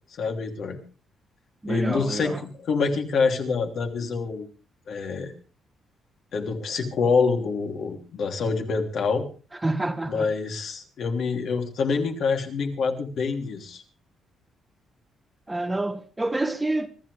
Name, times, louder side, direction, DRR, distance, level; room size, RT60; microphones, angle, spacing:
voice 1, 0.2-0.8 1.7-4.5 4.9-5.3 6.3-9.2 10.1-13.8, left 4 dB, 60° left, 3.1 m, -26 dB
voice 2, 1.6-2.3 9.6-10.2 15.5-16.9, right 2 dB, 10° right, 1.3 m, -27 dB
24.5 x 14.0 x 3.4 m
cardioid pair, 135°, 0 cm